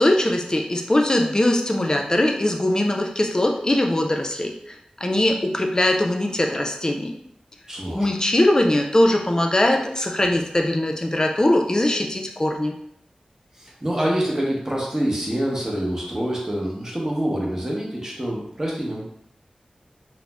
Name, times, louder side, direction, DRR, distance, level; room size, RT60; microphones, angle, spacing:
voice 1, 0.0-7.1 7.9-12.7, left 1 dB, 30° left, 3 dB, 0.4 m, -21 dB
voice 2, 7.7-8.1 13.6-19.1, right 1 dB, 20° right, -3 dB, 0.8 m, -26 dB
2.5 x 2.0 x 3.3 m, 0.73 s
wide cardioid pair, 60°, 2 cm